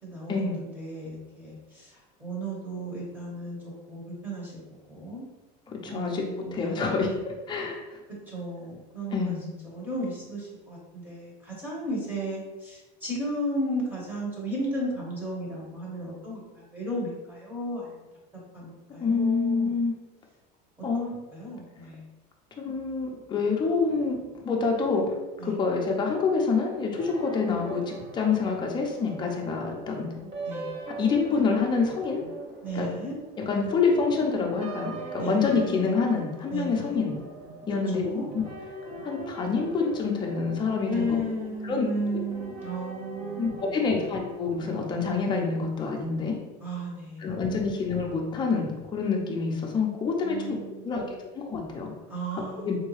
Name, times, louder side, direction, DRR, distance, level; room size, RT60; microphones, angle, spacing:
voice 1, 0.0-5.3 5.8-6.8 8.3-9.4 9.6-18.0 18.5-19.7 21.3-22.0 25.4-25.6 30.4-30.7 32.6-33.2 35.2-35.9 36.5-37.0 37.9-38.3 40.9-43.9 46.6-47.4 50.2-51.2 52.1-52.8, equal, 10° right, -4 dB, 1.0 m, -34 dB
voice 2, 5.7-8.0 9.1-9.4 19.0-19.9 20.8-21.1 22.6-25.1 25.4-30.1 30.9-32.2 32.7-32.9 33.4-37.2 37.7-38.4 39.0-41.2 41.7-41.9 43.4-46.4 47.2-51.1 51.3-51.9 52.6-52.8, left 4 dB, 20° left, 0 dB, 0.6 m, -27 dB
sound 1, 27.0-45.6, right 2 dB, 30° right, 0.7 m, -41 dB
3.8 x 2.2 x 3.1 m, 1.1 s
cardioid pair, 140°, 21 cm